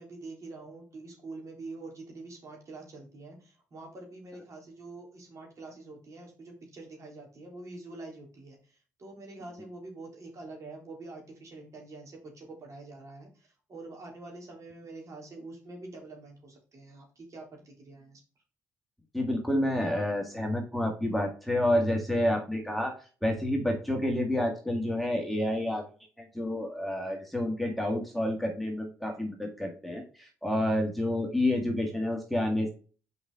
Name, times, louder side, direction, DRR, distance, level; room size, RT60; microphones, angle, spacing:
voice 1, 0.0-18.2, right 2 dB, 50° right, 0 dB, 3.2 m, -46 dB
voice 2, 19.1-22.9 23.2-25.9 26.2-32.7, left 1 dB, ahead, 1 dB, 1.9 m, -29 dB
6.0 x 5.2 x 3.8 m, 0.38 s
hypercardioid pair, 50°, 7 cm